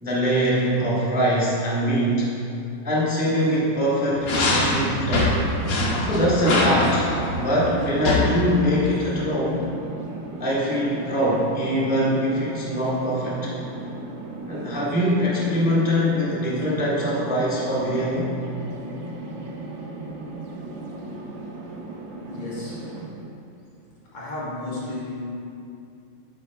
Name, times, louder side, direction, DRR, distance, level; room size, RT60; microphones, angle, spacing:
voice 1, 0.0-2.3 2.8-5.3 6.1-7.1 7.3-9.7 10.4-13.5 14.5-18.3, equal, 5° right, -6 dB, 0.8 m, -23 dB
sound 1, 4.2-8.3, left 2 dB, 55° left, 1.2 m, -23 dB
sound 2, 4.3-23.1, right 2 dB, 60° right, 1.5 m, -36 dB
voice 2, 22.3-22.9 24.1-25.2, left 2 dB, 85° left, -7 dB, 3.0 m, -33 dB
9.9 x 8.4 x 2.3 m, 2.6 s
omnidirectional pair, 2.4 m